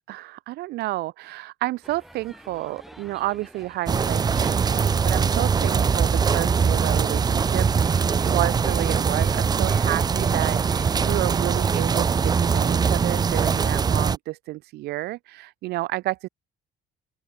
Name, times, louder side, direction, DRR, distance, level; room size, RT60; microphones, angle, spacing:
voice 1, 0.1-16.3, right 18 dB, 75° right, 0.5 m, -30 dB
sound 1, 1.8-14.1, equal, ahead, 5.5 m, -48 dB
sound 2, 3.9-14.2, right 6 dB, 25° right, 0.5 m, -22 dB
open air
cardioid pair, 110°, 17 cm